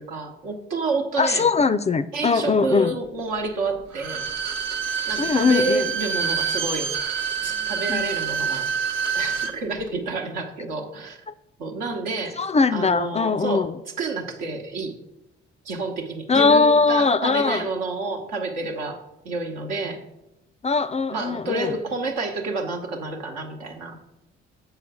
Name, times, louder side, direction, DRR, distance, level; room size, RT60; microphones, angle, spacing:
voice 1, 0.0-1.5 2.1-4.3 5.1-6.9 7.4-8.7 9.1-11.2 11.6-12.4 12.7-13.7 14.0-14.9 15.6-20.0 21.1-24.0, right 3 dB, 80° right, 1.0 m, -29 dB
voice 2, 1.2-3.0 5.2-5.9 7.9-8.0 11.3-11.4 12.4-13.8 16.3-17.7 20.6-21.7, left 4 dB, 25° left, 0.3 m, -21 dB
Bowed string instrument, 3.9-9.6 9.9-10.0, right 6 dB, 60° right, 0.7 m, -27 dB
6.9 x 4.9 x 4.8 m
hypercardioid pair, 45°, 30 cm